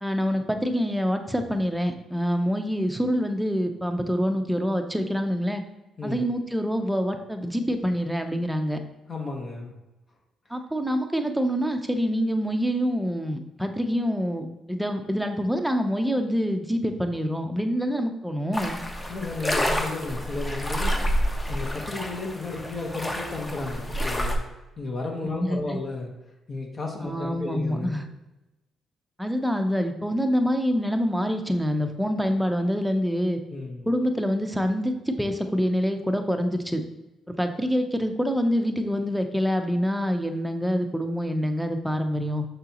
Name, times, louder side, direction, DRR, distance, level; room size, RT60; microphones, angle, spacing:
voice 1, 0.0-5.6 6.0-8.8 10.5-18.8 25.2-25.8 27.0-28.0 29.2-33.4 33.9-36.8 37.3-42.5, equal, 5° right, 5 dB, 0.7 m, -26 dB
voice 2, 6.0-6.3 9.1-9.7 19.1-21.1 21.5-24.4 24.8-26.1 26.5-28.0 33.5-33.9, left 3 dB, 40° left, 1 dB, 1.3 m, -33 dB
sound 1, 18.5-24.3, equal, 20° left, 1.1 m, -28 dB
6.6 x 5.7 x 3.0 m, 1.0 s
cardioid pair, 90°, 0 cm